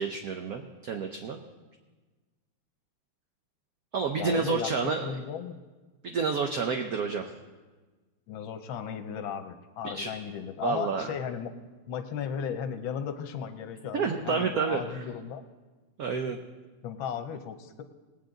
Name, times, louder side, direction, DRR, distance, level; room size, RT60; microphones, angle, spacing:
voice 1, 0.0-1.4 3.9-5.2 6.0-7.3 9.9-10.1 10.6-11.1 13.9-15.0 16.0-16.4, right 5 dB, 60° right, 4 dB, 1.0 m, -29 dB
voice 2, 4.2-4.7 5.0-5.6 8.3-11.5 11.9-15.4 16.8-17.8, left 8 dB, 85° left, 8 dB, 1.6 m, -35 dB
20.0 x 8.9 x 3.9 m, 1.3 s
omnidirectional pair, 2.1 m